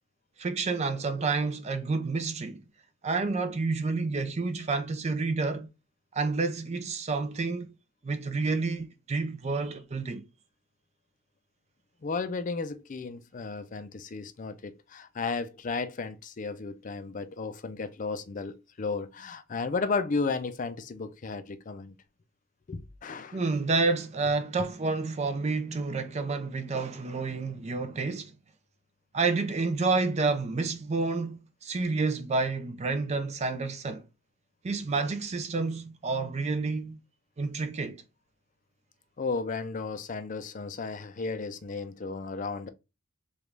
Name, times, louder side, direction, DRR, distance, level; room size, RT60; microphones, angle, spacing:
voice 1, 0.4-2.6 3.0-5.7 6.1-7.7 8.0-10.3 23.3-28.3 29.1-34.1 34.6-37.0 37.4-38.0, right 3 dB, 35° right, 0.4 m, -29 dB
voice 2, 12.0-21.9 22.7-23.4 39.2-42.7, left 4 dB, 40° left, 0.4 m, -34 dB
5.0 x 2.4 x 3.2 m
head